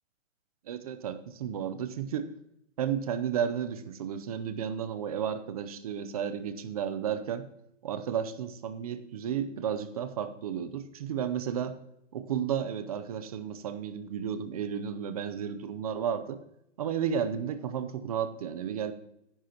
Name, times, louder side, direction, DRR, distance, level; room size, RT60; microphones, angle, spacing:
voice 1, 0.6-2.3 2.8-7.5 7.8-11.8 12.1-16.4 16.8-18.9, right 8 dB, 30° right, 12 dB, 0.6 m, -33 dB
11.5 x 10.5 x 2.9 m, 0.79 s
hypercardioid pair, 160°, 38 cm